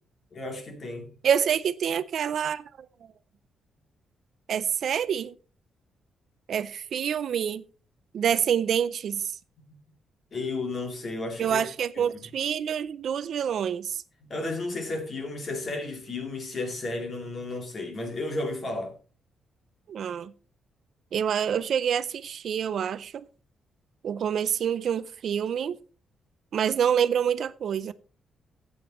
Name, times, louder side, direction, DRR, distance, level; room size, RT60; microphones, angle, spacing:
voice 1, 0.3-1.1 9.7-9.8 10.3-11.6 12.0-12.2 14.2-18.9, left 2 dB, 35° left, 2.4 m, -33 dB
voice 2, 1.2-2.6 4.5-5.3 6.5-7.6 8.1-9.3 11.4-14.0 19.9-20.3 21.1-23.2 24.0-25.8 26.5-27.9, right 8 dB, 55° right, 0.4 m, -27 dB
14.0 x 8.7 x 3.0 m
cardioid pair, 145°, 0 cm